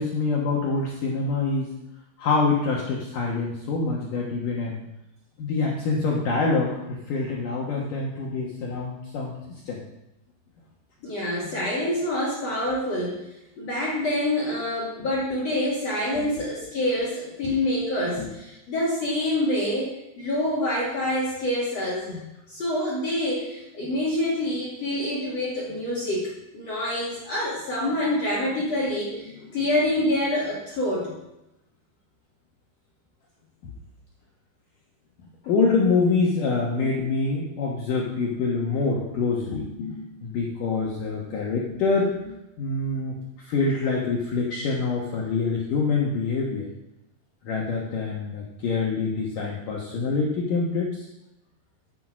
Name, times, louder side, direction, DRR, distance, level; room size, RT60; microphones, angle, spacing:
voice 1, 0.0-1.7 2.2-4.8 5.4-9.3 9.7-9.8 14.9-15.1 16.2-16.3 17.4-17.5 18.2-18.3 33.6-33.7 35.5-46.7 47.4-51.1, left 4 dB, 60° left, -3 dB, 2.6 m, -26 dB
voice 2, 11.0-13.3 13.6-31.1, left 1 dB, 45° left, -6 dB, 3.2 m, -26 dB
12.0 x 7.8 x 6.1 m, 0.90 s
omnidirectional pair, 4.7 m